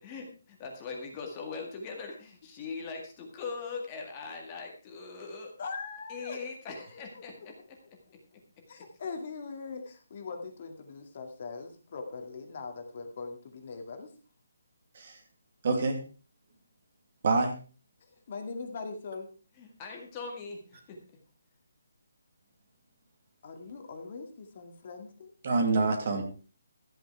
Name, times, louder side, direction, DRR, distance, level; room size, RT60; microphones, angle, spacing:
voice 1, 0.0-5.5 6.1-8.0 19.6-21.0, left 4 dB, 15° left, 2 dB, 2.0 m, -41 dB
voice 2, 5.6-6.4 7.1-7.7 8.7-14.1 18.0-19.3 23.4-25.3, left 4 dB, 30° left, 5 dB, 2.1 m, -41 dB
voice 3, 15.6-16.0 17.2-17.5 25.4-26.2, right 3 dB, 35° right, 5 dB, 2.4 m, -26 dB
13.5 x 9.2 x 4.7 m, 0.36 s
hypercardioid pair, 175°, 0 cm